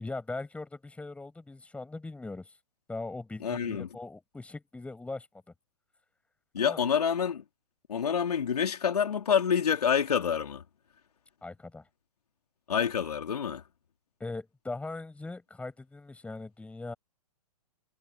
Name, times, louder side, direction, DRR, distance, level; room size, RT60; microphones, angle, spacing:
voice 1, 0.0-2.5 2.9-5.3 6.6-6.8 11.4-11.9 14.2-16.9, left 3 dB, 5° left, 7.1 m, -40 dB
voice 2, 3.4-3.9 6.5-7.4 7.9-10.6 12.7-13.6, left 7 dB, 75° left, 3.6 m, -27 dB
hypercardioid pair, 120°, 20 cm